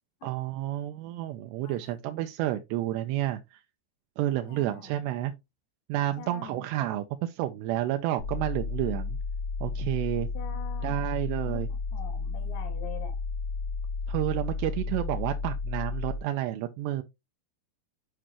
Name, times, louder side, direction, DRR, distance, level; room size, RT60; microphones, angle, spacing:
voice 1, 0.2-3.6 4.2-5.3 5.9-9.2 9.6-10.3 10.8-11.7 14.1-17.0, right 14 dB, 85° right, 2.6 m, -30 dB
voice 2, 1.6-2.0 4.5-4.9 6.2-6.7 10.4-11.1 11.5-13.2, left 8 dB, 85° left, 3.6 m, -45 dB
sound 1, 8.2-16.2, left 4 dB, 70° left, 3.7 m, -33 dB
8.7 x 5.0 x 3.0 m
omnidirectional pair, 5.0 m